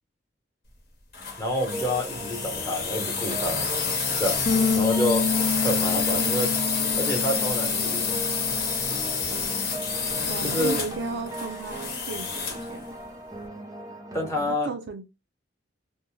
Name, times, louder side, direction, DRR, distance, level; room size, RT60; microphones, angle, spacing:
sound 1, 1.1-12.7, left 5 dB, 55° left, 0.9 m, -28 dB
voice 1, 1.4-3.7 4.2-4.4 4.7-5.3 5.6-6.5 7.0-8.2 10.4-10.8 14.1-14.7, left 1 dB, 15° left, 0.8 m, -28 dB
sound 2, 1.7-14.5, equal, 20° right, 0.5 m, -39 dB
Bass guitar, 4.5-10.7, left 4 dB, 85° left, 0.4 m, -29 dB
voice 2, 10.3-12.9 14.5-15.0, right 5 dB, 80° right, 0.4 m, -35 dB
2.5 x 2.1 x 3.0 m
head